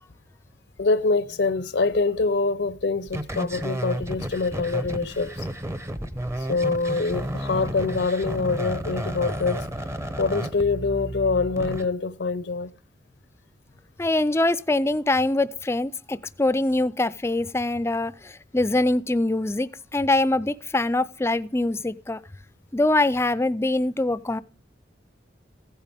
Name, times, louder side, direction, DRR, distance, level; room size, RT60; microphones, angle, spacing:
voice 1, 0.8-5.5 6.5-9.7 10.2-12.7, left 3 dB, 80° left, 0.7 m, -25 dB
sound 1, 3.1-11.8, equal, 15° right, 0.7 m, -32 dB
voice 2, 14.0-22.2 22.7-24.4, left 2 dB, 15° left, 0.4 m, -23 dB
15.5 x 9.0 x 3.5 m
head